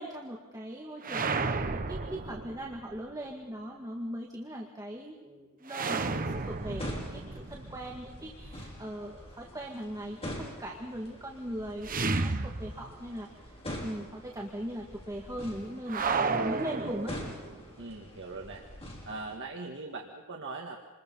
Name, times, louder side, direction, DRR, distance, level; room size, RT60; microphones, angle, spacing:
voice 1, 0.0-1.4 1.7-13.6 13.8-17.1, right 1 dB, 15° right, -1 dB, 2.0 m, -39 dB
sound 1, 1.0-3.0 5.7-8.7 11.8-13.2 13.5-13.6 15.9-17.6, right 4 dB, 40° right, 1.0 m, -33 dB
voice 2, 5.8-6.2 17.8-18.6 19.1-20.8, right 3 dB, 60° right, 0 dB, 1.8 m, -41 dB
sound 2, 5.9-19.4, left 1 dB, 30° left, 5.5 m, -45 dB
27.5 x 21.5 x 5.6 m, 1.4 s
head